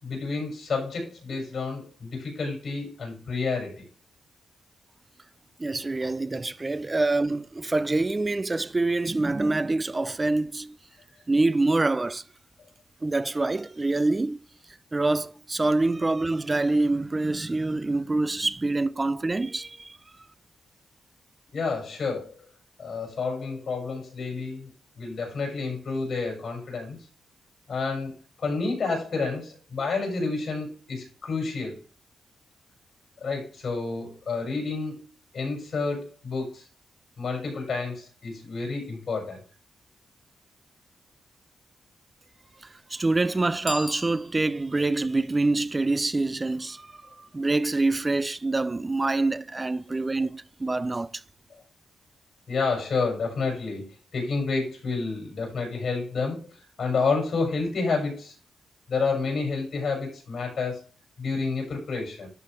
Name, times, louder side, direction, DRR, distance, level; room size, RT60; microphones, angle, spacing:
voice 1, 0.0-3.8 21.5-22.3 22.8-24.7 25.0-27.0 27.7-28.1 28.4-31.8 33.2-35.0 35.3-36.6 37.2-39.4 52.5-53.9 54.1-58.3 58.9-60.8 61.2-62.3, left 4 dB, 55° left, 4.9 m, -29 dB
voice 2, 5.6-10.7 11.3-12.2 13.0-14.4 14.9-19.9 42.9-46.8 47.3-51.1, right 2 dB, 20° right, 0.4 m, -25 dB
Bicycle bell, 43.6-44.8, left 1 dB, 10° left, 0.9 m, -38 dB
11.0 x 3.8 x 4.3 m
cardioid pair, 110°, 0 cm